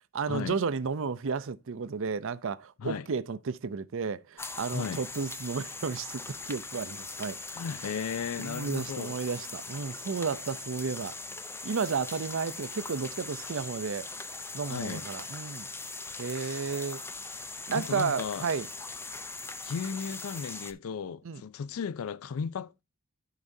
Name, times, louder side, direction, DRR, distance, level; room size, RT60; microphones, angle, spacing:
voice 1, 0.1-6.2 6.5-7.4 8.4-11.2 11.6-14.1 14.5-15.7 16.2-17.0 17.7-18.7 21.2-21.4, right 5 dB, 65° right, 0.5 m, -32 dB
sound 1, 4.4-20.7, left 3 dB, 10° left, 0.5 m, -41 dB
voice 2, 4.7-5.0 7.5-9.2 14.7-15.1 16.3-16.6 17.7-18.5 19.6-22.8, left 6 dB, 80° left, 0.4 m, -35 dB
14.0 x 4.9 x 2.7 m
head